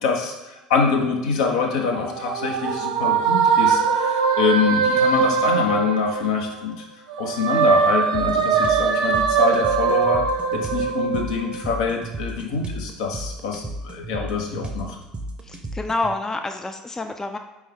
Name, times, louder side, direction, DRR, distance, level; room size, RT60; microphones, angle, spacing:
voice 1, 0.0-6.8 7.2-10.3 10.5-15.0, left 5 dB, 65° left, 1 dB, 0.7 m, -25 dB
sound 1, 1.7-6.7 7.1-11.9, right 6 dB, 70° right, 0.4 m, -21 dB
sound 2, 8.1-16.1, right 1 dB, 25° right, 0.6 m, -34 dB
voice 2, 15.4-17.4, left 2 dB, 15° left, 6 dB, 0.3 m, -28 dB
4.5 x 3.2 x 3.5 m, 1.0 s
figure-of-eight pair, 60°, 4 cm